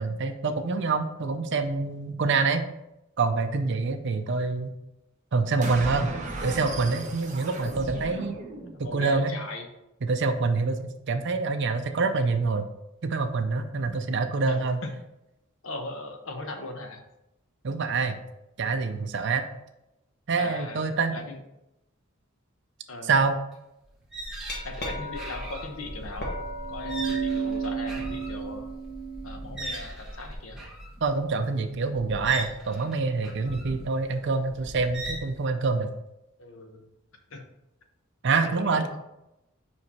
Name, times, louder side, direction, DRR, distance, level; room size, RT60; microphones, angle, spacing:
voice 1, 0.0-2.6 3.2-4.7 5.3-6.1 6.4-8.4 8.9-9.3 10.0-12.7 13.0-14.8 17.6-18.2 18.6-19.4 20.3-21.1 23.1-23.4 31.0-35.9 38.2-38.9, right 4 dB, 60° right, 7 dB, 0.6 m, -26 dB
sound 1, 5.6-9.0, right 2 dB, 35° right, 0.9 m, -36 dB
voice 2, 8.8-9.7 14.5-14.9 15.6-17.0 18.7-18.8 20.3-21.4 22.9-23.1 24.6-26.3 26.7-28.7 29.2-30.6 36.4-36.8 37.3-37.4 38.4-39.0, left 2 dB, 70° left, 5 dB, 0.9 m, -39 dB
sound 2, 23.5-23.6 23.9-35.4, right 1 dB, 5° right, 1.1 m, -40 dB
Glass, 24.2-30.3, right 3 dB, 50° left, 1.3 m, -33 dB
5.2 x 4.8 x 4.2 m, 0.89 s
head